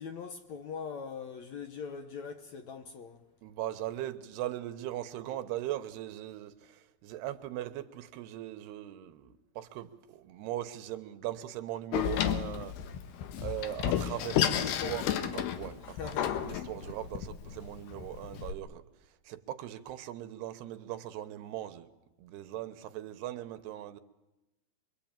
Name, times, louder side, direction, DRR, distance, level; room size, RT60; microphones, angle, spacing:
voice 1, 0.0-3.3 14.6-15.0 15.8-16.5, left 6 dB, 60° left, 2.0 m, -41 dB
voice 2, 3.4-12.8 13.4-18.8 19.2-21.9 22.2-24.0, right 13 dB, 85° right, 3.2 m, -39 dB
Door, 11.9-18.5, left 10 dB, 80° left, 3.3 m, -32 dB
25.5 x 24.0 x 9.0 m
omnidirectional pair, 4.6 m